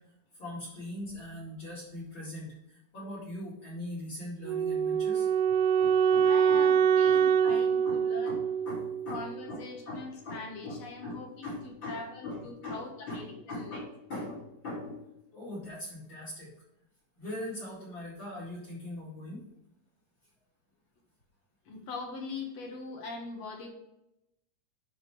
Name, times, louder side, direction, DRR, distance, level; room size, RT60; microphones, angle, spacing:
voice 1, 0.3-6.6 7.0-15.0 15.3-16.5 17.2-19.4, left 1 dB, 40° left, -5 dB, 2.6 m, -41 dB
Wind instrument woodwind instrument, 4.5-9.5, right 7 dB, 85° right, 2.2 m, -25 dB
voice 2, 6.2-8.4 9.1-13.3 13.5-13.8 21.7-23.7, left 3 dB, 55° left, 1 dB, 2.3 m, -41 dB
11.0 x 4.7 x 3.3 m, 0.84 s
omnidirectional pair, 3.9 m